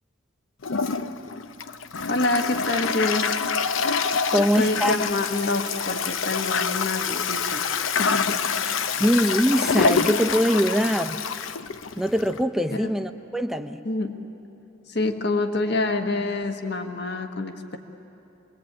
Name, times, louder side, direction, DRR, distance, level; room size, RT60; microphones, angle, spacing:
Toilet flush, 0.6-12.4, left 5 dB, 80° left, 0.8 m, -26 dB
voice 1, 2.1-3.4 4.3-7.6 8.0-8.5 8.7-9.0 12.7-12.9 13.8-14.2 14.9-17.8, left 2 dB, 55° left, 6 dB, 1.5 m, -27 dB
voice 2, 4.3-4.9 9.0-11.2 12.0-13.8, equal, ahead, 7 dB, 0.7 m, -22 dB
27.0 x 21.0 x 8.8 m, 2.9 s
head